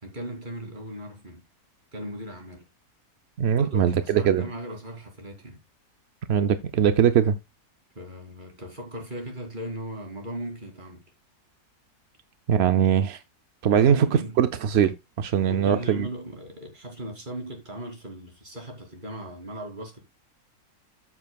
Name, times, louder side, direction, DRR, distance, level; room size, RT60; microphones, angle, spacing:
voice 1, 0.0-1.4 1.9-2.7 3.6-5.6 7.9-11.0 13.6-14.4 15.4-20.0, right 1 dB, 30° right, 3.0 m, -38 dB
voice 2, 3.4-4.4 6.3-7.4 12.5-13.2 13.6-14.1 14.4-16.1, right 8 dB, 60° right, 0.7 m, -21 dB
13.5 x 7.2 x 2.3 m
omnidirectional pair, 1.6 m